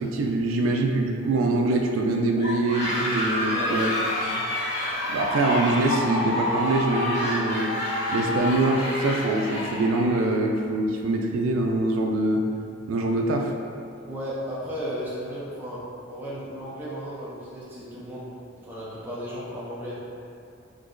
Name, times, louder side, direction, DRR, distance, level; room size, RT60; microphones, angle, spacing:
voice 1, 0.0-3.9 4.2-4.4 5.1-7.7 8.1-12.4 12.9-13.5, right 2 dB, 85° right, 1 dB, 0.3 m, -24 dB
sound 1, 2.4-10.2, left 1 dB, 35° left, 1.2 m, -28 dB
voice 2, 14.0-15.8 16.1-18.3 18.6-20.0, equal, 10° right, -9 dB, 0.5 m, -34 dB
3.8 x 2.9 x 2.5 m, 2.5 s
head